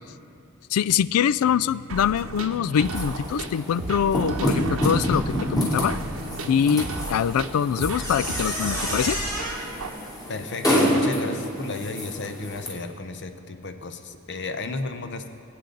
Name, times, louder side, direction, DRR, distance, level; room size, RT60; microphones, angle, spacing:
voice 1, 0.7-6.0 6.5-9.2, left 8 dB, 90° left, 19 dB, 0.3 m, -24 dB
sound 1, 1.9-9.9, right 3 dB, 70° right, 0.8 m, -34 dB
sound 2, 2.8-12.7, equal, 20° left, 2.7 m, -28 dB
voice 2, 10.3-15.3, left 3 dB, 55° left, 8 dB, 0.8 m, -33 dB
24.5 x 8.5 x 3.9 m, 2.5 s
head